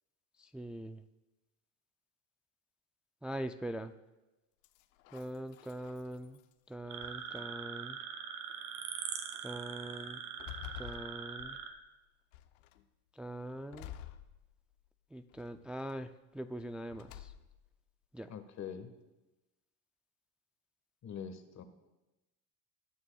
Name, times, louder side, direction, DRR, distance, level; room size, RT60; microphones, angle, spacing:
voice 1, 0.4-1.0 3.2-3.9 5.1-6.4 6.7-8.0 9.4-10.2 10.8-11.6 13.1-13.9 15.1-17.3 18.1-18.3, right 1 dB, 5° right, 8 dB, 0.4 m, -42 dB
sound 1, 4.6-6.5 7.0-7.7 8.5-8.6 9.1-9.4 9.9-11.9 12.3-12.8 13.7-14.9 15.3-15.9 16.9-17.7, left 12 dB, 85° left, 0.8 m, -51 dB
sound 2, 6.9-11.7, right 7 dB, 55° right, 2.0 m, -42 dB
voice 2, 18.3-18.9 21.0-21.6, left 7 dB, 45° left, 8 dB, 1.5 m, -43 dB
20.5 x 9.5 x 2.3 m, 1.0 s
supercardioid pair, 90°, 38 cm